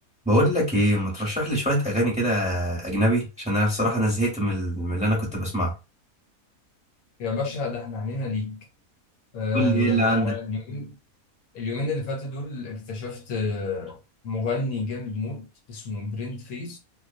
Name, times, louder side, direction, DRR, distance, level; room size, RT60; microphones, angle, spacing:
voice 1, 0.2-5.7 9.5-10.3, right 1 dB, 5° right, 0.8 m, -23 dB
voice 2, 7.2-8.6 9.3-10.9 11.5-14.0 14.2-16.8, left 3 dB, 80° left, 1.2 m, -30 dB
2.4 x 2.2 x 2.5 m
omnidirectional pair, 1.5 m